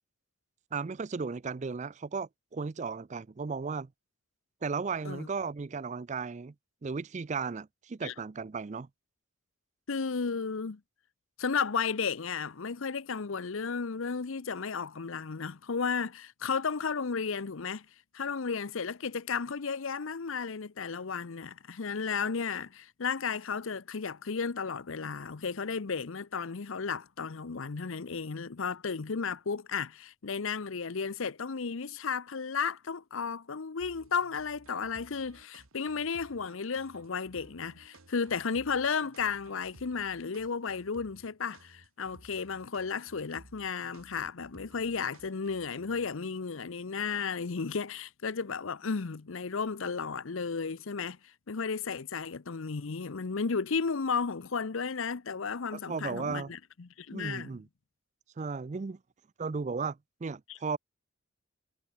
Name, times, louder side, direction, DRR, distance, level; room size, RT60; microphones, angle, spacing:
voice 1, 0.7-3.9 4.6-6.5 6.8-8.9 55.7-56.5 57.1-57.7 58.4-59.0 59.4-60.8, right 5 dB, 35° right, 0.4 m, -35 dB
voice 2, 9.9-10.8 11.4-17.9 18.1-57.6 60.5-60.6, left 5 dB, 75° left, 0.7 m, -34 dB
sound 1, 33.8-46.3, right 2 dB, 90° right, 2.6 m, -57 dB
head